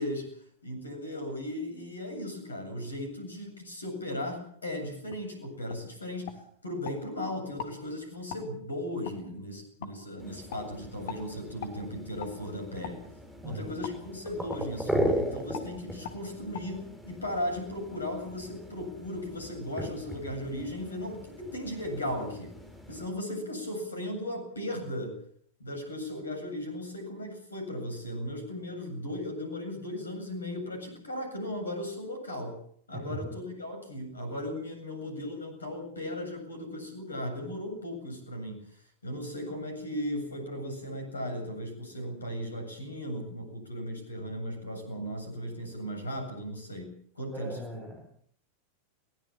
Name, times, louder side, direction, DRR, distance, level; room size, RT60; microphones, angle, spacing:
voice 1, 0.0-13.0 13.4-22.6 22.9-25.2 25.6-32.6 32.9-47.8, left 1 dB, 75° left, 6 dB, 8.0 m, -37 dB
sound 1, 5.1-5.2 5.7-5.8 6.2-7.0 7.5-7.7 8.3-8.4 9.0-9.2 9.8-9.9 10.5-10.6 11.1-11.2 11.6-11.8 12.2-12.3 12.8-13.0 13.8-14.0 14.5-14.7 15.0-15.2 15.5-15.7 16.0-16.2 16.5-16.6, left 9 dB, 50° left, 3.0 m, -40 dB
sound 2, 10.2-23.1, equal, 5° right, 6.5 m, -38 dB
voice 2, 47.3-48.0, right 1 dB, 25° right, 2 dB, 6.5 m, -39 dB
23.0 x 18.5 x 7.4 m, 0.63 s
figure-of-eight pair, 90°, 0 cm